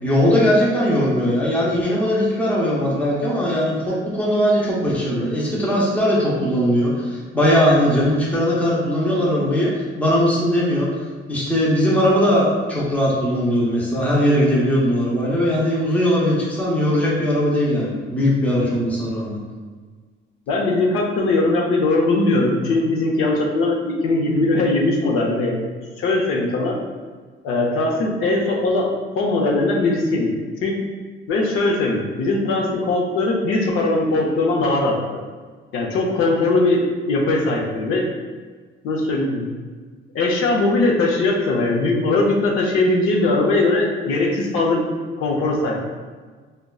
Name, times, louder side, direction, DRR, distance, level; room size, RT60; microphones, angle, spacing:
voice 1, 0.0-9.7 10.0-10.9 11.3-19.4, equal, 5° left, -6 dB, 0.7 m, -19 dB
voice 2, 20.5-25.7 26.0-26.8 27.4-28.9 29.2-30.3 30.6-30.8 31.3-35.0 35.7-38.1 38.8-39.5 40.1-44.8 45.2-45.8, left 2 dB, 85° left, -1 dB, 0.6 m, -20 dB
4.8 x 2.2 x 2.3 m, 1.5 s
cardioid pair, 165°, 21 cm